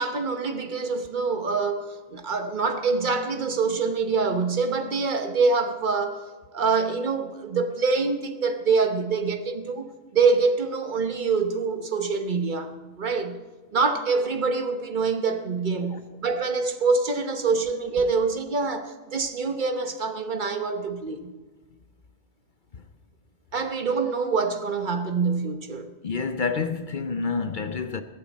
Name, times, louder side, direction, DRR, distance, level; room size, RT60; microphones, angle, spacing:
voice 1, 0.0-6.2 6.5-13.4 13.7-21.3 23.5-25.9, right 4 dB, 40° right, 1.1 m, -25 dB
voice 2, 26.0-28.0, left 5 dB, 45° left, 0.7 m, -28 dB
21.0 x 11.0 x 4.2 m
omnidirectional pair, 1.4 m